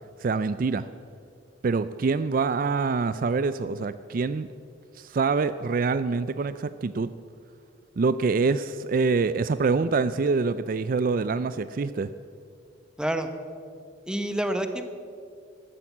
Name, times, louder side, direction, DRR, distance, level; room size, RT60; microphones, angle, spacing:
voice 1, 0.2-0.9 1.6-4.5 4.9-7.1 8.0-12.1, right 4 dB, 45° right, 13 dB, 0.4 m, -25 dB
voice 2, 13.0-13.3 14.1-14.9, right 1 dB, 5° right, 7 dB, 1.0 m, -28 dB
14.0 x 12.5 x 7.3 m, 2.3 s
head